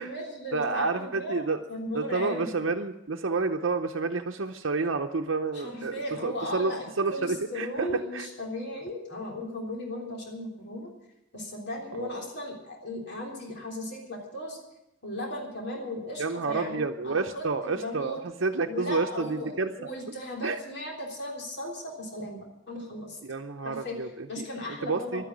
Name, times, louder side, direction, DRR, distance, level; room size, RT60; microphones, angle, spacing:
voice 1, 0.0-2.6 5.5-10.9 11.3-14.6 15.0-18.2 18.7-23.2 23.6-25.3, left 1 dB, 60° left, -1 dB, 3.5 m, -36 dB
voice 2, 0.5-1.6 1.9-5.9 6.2-8.3 11.9-12.2 16.2-19.9 20.4-20.6 23.2-24.4 24.8-25.2, right 3 dB, 75° right, 4 dB, 0.7 m, -30 dB
12.0 x 10.0 x 9.7 m, 0.91 s
head